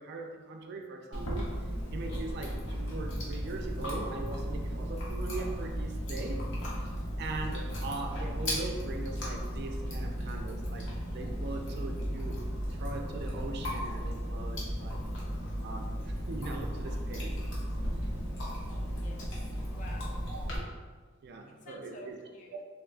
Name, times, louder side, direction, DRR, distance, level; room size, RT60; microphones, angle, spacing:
voice 1, 0.0-1.5 1.9-6.4 6.7-6.8 7.2-12.4 12.7-15.0 15.6-17.4 20.3-20.4 21.2-22.2, right 3 dB, 55° right, 3 dB, 0.3 m, -41 dB
Chewing mastication, 1.1-20.6, equal, 65° left, 0.7 m, -35 dB
voice 2, 18.9-20.2 21.4-22.6, left 1 dB, 40° left, 1 dB, 0.3 m, -50 dB
3.4 x 2.2 x 2.4 m, 1.5 s
head